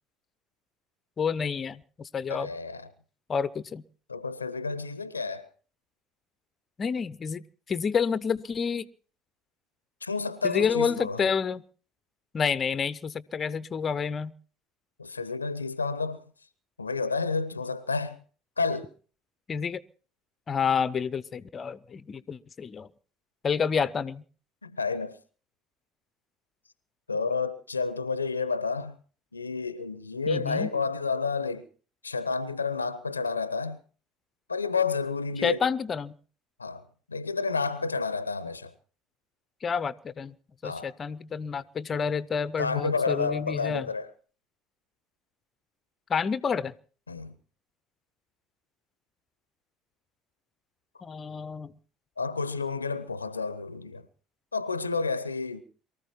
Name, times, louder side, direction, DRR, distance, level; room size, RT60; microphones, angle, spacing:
voice 1, 1.2-2.5 3.3-3.8 6.8-7.4 7.7-8.9 10.4-11.6 12.3-14.3 19.5-19.8 20.5-22.9 23.4-24.2 30.3-30.7 35.4-36.1 39.6-40.3 40.6-43.9 46.1-46.7 51.0-51.7, left 6 dB, 35° left, 0.8 m, -29 dB
voice 2, 2.3-2.9 4.1-5.5 10.0-11.3 15.0-16.2 16.8-18.2 18.6-18.9 24.6-25.2 27.1-29.0 29.3-31.7 32.0-33.8 34.5-35.6 36.6-36.8 37.1-38.7 40.6-40.9 42.6-44.1 47.1-47.3 52.2-54.1 54.5-55.6, left 4 dB, 90° left, 0.7 m, -30 dB
23.0 x 14.0 x 4.5 m
figure-of-eight pair, 60°, 0 cm